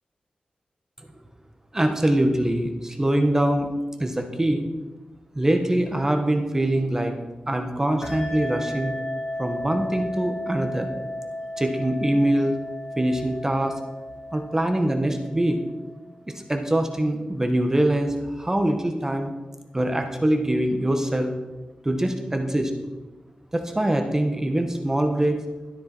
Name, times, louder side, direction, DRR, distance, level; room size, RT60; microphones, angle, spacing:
voice 1, 1.7-3.7 4.0-4.7 5.3-7.1 7.5-8.9 9.4-10.9 11.6-12.5 13.0-13.8 14.3-15.6 16.3-19.3 19.7-21.3 21.8-22.7 23.5-25.4, right 1 dB, 20° right, 5 dB, 1.4 m, -23 dB
sound 1, 8.0-16.1, left 1 dB, 65° left, 4.1 m, -34 dB
13.0 x 12.5 x 4.5 m, 1.2 s
wide cardioid pair, 90°, 3 cm